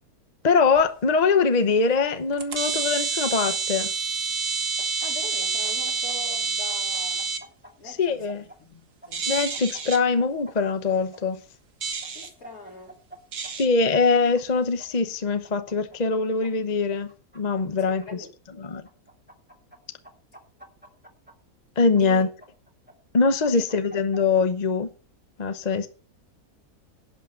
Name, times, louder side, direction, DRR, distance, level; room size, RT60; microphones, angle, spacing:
voice 1, 0.4-3.9 7.9-8.4 9.3-11.4 13.6-18.0 18.6-18.8 21.8-22.3 23.1-24.9 25.4-25.9, left 4 dB, 35° left, 0.9 m, -23 dB
sound 1, 0.8-0.9 1.7-1.8 2.3-7.4 9.1-10.0 11.8-12.3 13.3-13.7, right 5 dB, 80° right, 2.0 m, -28 dB
sound 2, 4.8-6.4 6.7-8.6 9.0-11.2 12.0-13.2 13.4-13.5 13.9-14.9 15.4-16.5 17.1-18.1 18.8-19.8 20.0-21.3 21.9-22.9 23.4-24.4, right 1 dB, 5° right, 2.4 m, -47 dB
voice 2, 5.0-7.3 7.8-8.3 8.6-9.3 12.1-13.0 17.8-18.8 22.0-22.2 23.5-23.6, left 2 dB, 65° left, 4.0 m, -43 dB
11.5 x 8.4 x 5.7 m
omnidirectional pair, 1.6 m